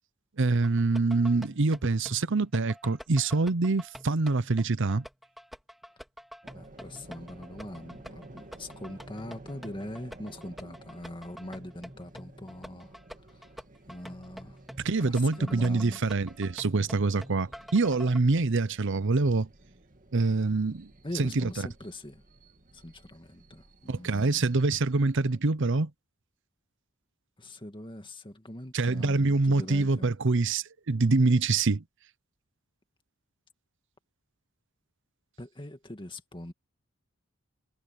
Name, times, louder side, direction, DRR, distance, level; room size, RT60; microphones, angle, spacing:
voice 1, 0.4-5.0 14.8-19.5 20.1-20.9 21.2-21.5 23.9-25.9 28.7-31.8, right 3 dB, 60° right, 0.8 m, -25 dB
sound 1, 0.6-18.2, equal, ahead, 4.7 m, -47 dB
sound 2, 6.4-25.4, right 1 dB, 40° right, 2.3 m, -53 dB
voice 2, 6.5-13.5 13.9-14.6 15.0-16.0 21.0-22.2 22.7-24.5 27.4-30.1 35.4-36.5, left 1 dB, 25° left, 2.2 m, -42 dB
head